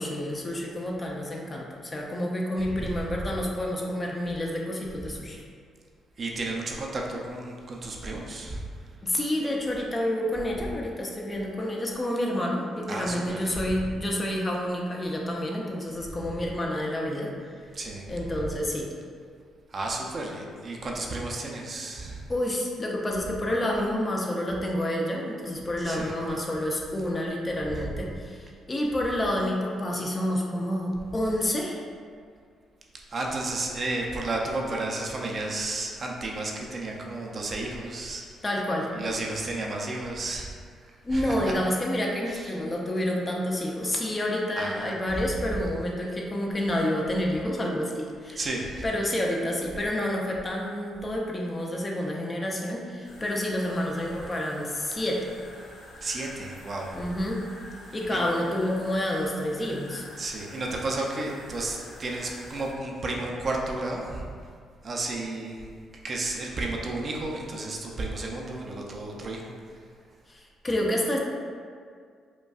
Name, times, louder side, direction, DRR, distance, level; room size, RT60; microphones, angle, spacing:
voice 1, 0.0-5.4 9.0-17.5 18.1-18.9 22.3-31.8 38.4-38.9 41.0-48.4 48.8-55.3 56.9-57.4 57.9-60.1 70.3-71.2, left 1 dB, 25° left, -1 dB, 0.5 m, -29 dB
voice 2, 2.6-2.9 6.2-8.6 12.9-13.7 17.7-18.1 19.7-22.3 25.8-26.1 33.1-38.3 38.9-40.5 40.8-41.5 42.3-42.5 44.6-44.9 48.4-48.8 56.0-57.0 58.1-58.2 60.2-64.3 64.8-65.7 66.0-69.8, right 2 dB, 40° right, -1 dB, 0.5 m, -32 dB
sound 1, 53.0-62.7, left 1 dB, 90° left, 0.8 m, -47 dB
5.1 x 2.2 x 2.4 m, 2.1 s
cardioid pair, 90°, 0 cm